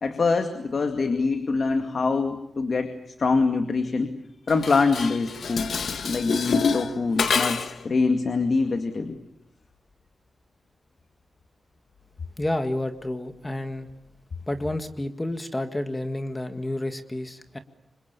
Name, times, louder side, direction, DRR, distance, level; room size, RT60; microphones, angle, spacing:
voice 1, 0.0-2.9 3.2-4.1 4.5-5.7 6.0-9.2, left 4 dB, 55° left, 6 dB, 2.2 m, -24 dB
Dishes pots and pans, 4.5-7.9, left 5 dB, 80° left, 1.8 m, -27 dB
voice 2, 12.4-13.9 14.5-17.6, left 1 dB, 15° left, 7 dB, 1.8 m, -30 dB
29.5 x 26.0 x 6.9 m, 0.82 s
wide cardioid pair, 130°, 0 cm